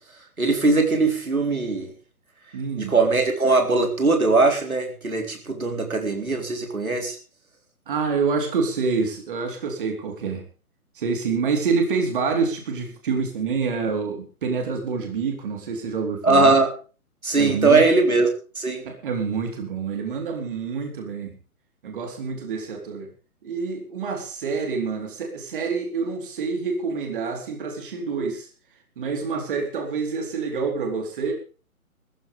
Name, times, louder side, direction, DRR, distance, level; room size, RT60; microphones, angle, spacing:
voice 1, 0.4-1.9 2.8-7.2 16.2-16.7 17.2-18.3 18.6-18.8, right 3 dB, 70° right, 3 dB, 4.1 m, -20 dB
voice 2, 2.5-3.0 7.9-10.4 11.0-16.6 17.4-17.8 18.8-21.4 21.8-23.1 23.4-28.5 29.0-31.3, right 5 dB, 35° right, 3 dB, 4.1 m, -27 dB
20.5 x 14.5 x 3.5 m, 0.38 s
figure-of-eight pair, 135°, 43 cm